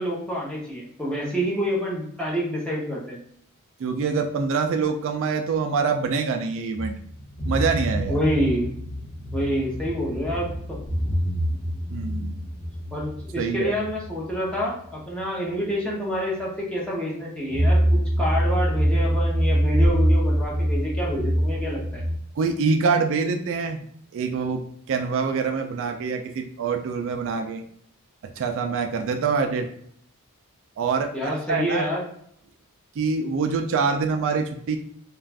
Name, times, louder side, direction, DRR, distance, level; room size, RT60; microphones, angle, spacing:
voice 1, 0.0-3.2 8.1-8.7 9.3-10.8 12.9-22.0 31.1-32.0, equal, 5° left, -5 dB, 0.8 m, -27 dB
voice 2, 3.8-7.0 7.5-8.2 11.9-12.4 13.4-13.7 22.4-23.8 24.1-24.6 24.9-27.6 28.4-29.7 30.8-31.9 33.0-34.8, right 5 dB, 60° right, 6 dB, 0.3 m, -25 dB
sound 1, 6.7-15.3 15.7-15.8 17.5-22.2, equal, 65° left, 0.7 m, -25 dB
2.4 x 2.3 x 3.3 m, 0.67 s
head